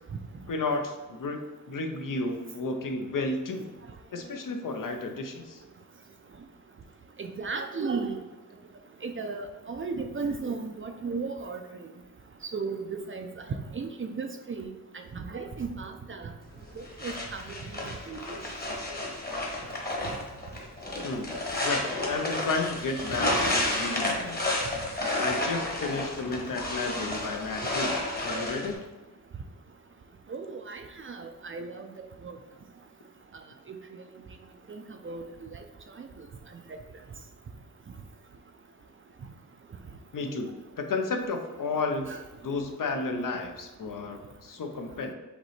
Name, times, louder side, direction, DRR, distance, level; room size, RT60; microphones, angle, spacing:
voice 1, 0.5-1.4 1.7-3.7 4.1-5.6 21.0-21.3 21.6-24.4 25.2-28.0 28.2-28.8 40.1-40.5 40.8-42.1 42.4-45.1, left 3 dB, 65° left, 4 dB, 0.7 m, -32 dB
voice 2, 7.2-8.2 9.0-11.6 12.5-14.7 15.1-16.3 17.0-17.6 17.8-18.3 30.3-31.8 32.2-32.4 34.7-35.2 35.5-35.6 42.1-42.2, right 4 dB, 35° right, 5 dB, 0.4 m, -35 dB
sound 1, 16.4-28.7, left 2 dB, 25° left, 1.1 m, -31 dB
5.1 x 3.2 x 3.2 m, 1.1 s
wide cardioid pair, 75°, 35 cm